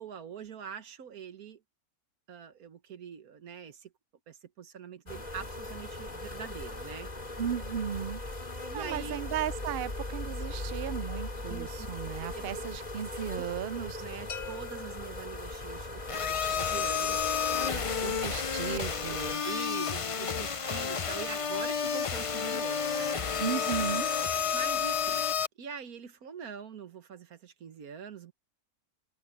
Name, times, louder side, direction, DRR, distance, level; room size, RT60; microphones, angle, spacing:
voice 1, 0.0-1.6 2.3-3.9 4.3-7.1 8.7-9.2 11.5-11.9 12.2-12.4 13.3-13.4 14.0-17.9 19.0-23.3 24.5-25.2 25.6-28.3, right 7 dB, 75° right, 1.7 m, -44 dB
sound 1, 5.1-19.3, left 2 dB, 30° left, 2.7 m, -39 dB
voice 2, 7.4-8.2 8.7-14.0 18.0-19.4 23.4-24.1, right 9 dB, 60° right, 0.6 m, -35 dB
sound 2, 14.3-16.1, left 7 dB, 80° left, 2.3 m, -45 dB
sound 3, 16.1-25.5, left 7 dB, 50° left, 0.3 m, -31 dB
omnidirectional pair, 1.5 m